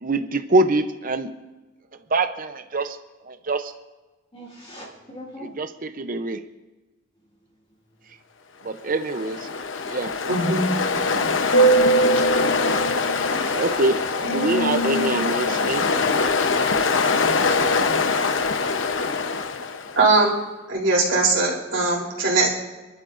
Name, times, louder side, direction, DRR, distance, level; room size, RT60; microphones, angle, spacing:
voice 1, 0.0-1.3 2.1-3.0 3.2-3.7 5.4-6.4 8.6-9.5 9.9-10.1 13.5-15.9, right 2 dB, 45° right, 9 dB, 0.7 m, -24 dB
voice 2, 4.3-5.5 12.1-12.2 12.5-13.7 14.9-15.6, left 1 dB, 30° left, -7 dB, 2.7 m, -39 dB
Ocean, 9.0-20.0, left 2 dB, 80° left, 0.9 m, -22 dB
voice 3, 10.2-10.7 17.5-17.6 20.0-20.3 20.7-22.5, right 3 dB, 75° right, -2 dB, 3.6 m, -20 dB
28.0 x 11.5 x 2.6 m, 1.2 s
head